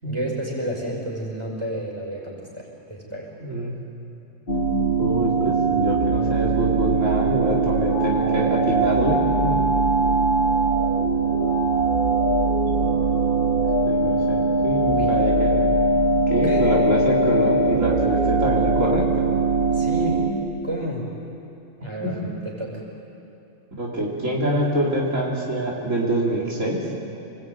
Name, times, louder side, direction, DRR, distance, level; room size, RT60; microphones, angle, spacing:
voice 1, 0.1-3.3 14.8-15.2 16.4-16.7 19.7-20.3 20.6-21.1 21.8-22.8, equal, 20° right, -2 dB, 6.1 m, -30 dB
voice 2, 3.4-3.7 5.0-9.6 12.8-13.6 13.9-15.7 16.3-19.3 22.0-22.3 23.8-26.9, right 1 dB, 75° right, -4 dB, 3.8 m, -25 dB
sound 1, 4.5-20.3, right 3 dB, 40° left, 1.9 m, -21 dB
29.0 x 20.0 x 9.3 m, 2.8 s
omnidirectional pair, 1.3 m